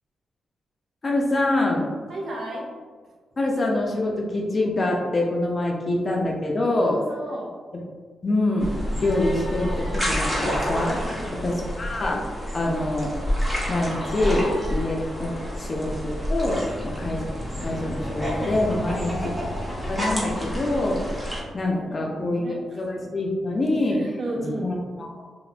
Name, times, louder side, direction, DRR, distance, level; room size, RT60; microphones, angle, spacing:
voice 1, 1.0-1.9 3.4-7.0 8.2-8.7 8.9-11.1 11.4-12.2 12.5-13.1 13.7-17.2 17.6-19.2 19.9-22.4 22.8-25.2, left 2 dB, 35° left, -1 dB, 0.5 m, -25 dB
voice 2, 2.1-2.6 6.9-7.5 10.9-11.8 18.9-19.3 21.7-22.8 23.9-24.7, right 1 dB, 60° right, -3 dB, 0.7 m, -34 dB
sound 1, 8.6-21.4, equal, 10° right, 0.7 m, -29 dB
2.9 x 2.1 x 2.4 m, 1.5 s
cardioid pair, 95°, 0 cm